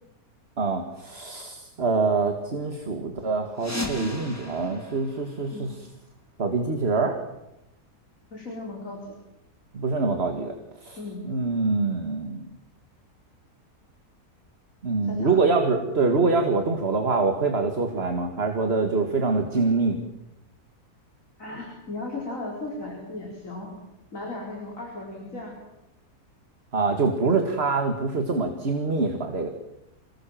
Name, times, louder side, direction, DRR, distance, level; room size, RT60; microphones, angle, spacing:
voice 1, 0.6-5.7 6.4-7.2 9.7-10.5 10.8-11.0 11.2-12.5 14.8-20.0 26.7-29.5, right 3 dB, 40° right, 5 dB, 2.1 m, -25 dB
sound 1, 3.5-6.2, left 1 dB, 10° left, 2.9 m, -36 dB
voice 2, 8.3-9.1 11.0-11.2 15.1-15.5 21.4-23.7 24.1-25.6, left 2 dB, 55° left, -1 dB, 5.0 m, -36 dB
27.0 x 19.5 x 7.6 m, 0.90 s
omnidirectional pair, 1.6 m